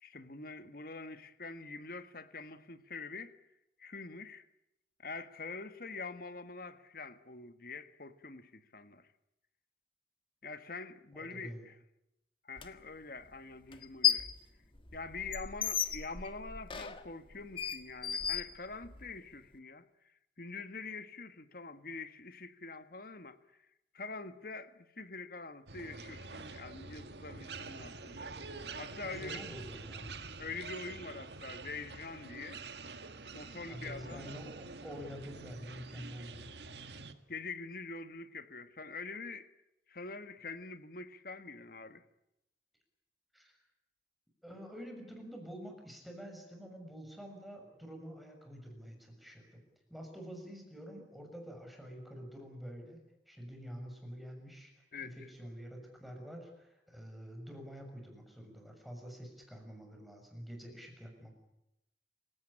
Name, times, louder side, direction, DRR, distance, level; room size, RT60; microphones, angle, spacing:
voice 1, 0.0-3.4 3.8-4.4 5.0-9.1 10.4-11.7 12.4-14.3 14.9-19.8 20.4-23.4 23.9-28.3 28.8-29.4 30.4-32.6 33.3-34.3 37.3-39.5 39.9-42.0 54.9-55.1, left 3 dB, 55° left, 1.7 m, -45 dB
voice 2, 11.1-11.6 29.0-30.1 33.7-36.6 43.3-43.5 44.4-49.6 49.9-53.0 53.3-61.3, equal, ahead, 6.5 m, -47 dB
Door Squeak, 12.6-12.7 13.7-14.4 14.7-19.1, left 9 dB, 30° left, 1.6 m, -34 dB
sound 1, 25.7-37.1, right 3 dB, 75° right, 1.8 m, -46 dB
27.5 x 17.0 x 9.9 m
head